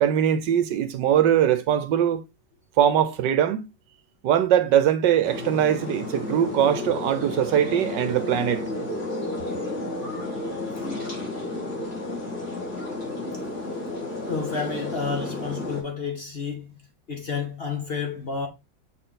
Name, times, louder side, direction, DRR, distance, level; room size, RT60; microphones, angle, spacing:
voice 1, 0.0-2.2 2.8-3.7 4.2-8.7, right 10 dB, 75° right, 1.3 m, -21 dB
sound 1, 5.2-15.8, left 2 dB, 55° left, 4.4 m, -32 dB
voice 2, 14.3-18.5, left 5 dB, 35° left, 1.6 m, -30 dB
6.6 x 4.5 x 3.8 m
omnidirectional pair, 2.0 m